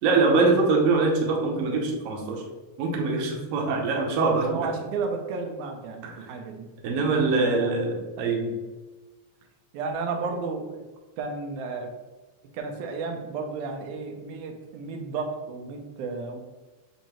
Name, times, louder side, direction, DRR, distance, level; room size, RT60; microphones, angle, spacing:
voice 1, 0.0-2.4 2.8-4.7 6.0-6.1 6.8-8.5, right 3 dB, 70° right, 1 dB, 1.6 m, -23 dB
voice 2, 4.4-6.7 7.4-7.8 9.7-10.8 11.2-11.9 12.5-16.4, right 4 dB, 85° right, 3 dB, 2.0 m, -33 dB
6.5 x 2.6 x 3.0 m, 1.2 s
omnidirectional pair, 3.4 m